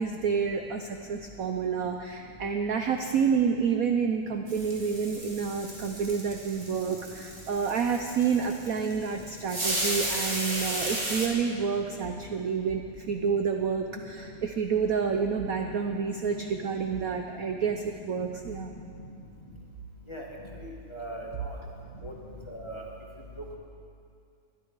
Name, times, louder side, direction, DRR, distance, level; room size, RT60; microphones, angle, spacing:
voice 1, 0.0-18.7, right 6 dB, 60° right, 4 dB, 0.9 m, -29 dB
sound 1, 4.5-11.3, right 1 dB, 25° right, 2.4 m, -34 dB
voice 2, 20.6-21.6 22.0-22.1 22.5-22.8, right 1 dB, 15° left, -2 dB, 1.7 m, -39 dB
23.0 x 11.5 x 4.7 m, 2.4 s
omnidirectional pair, 2.2 m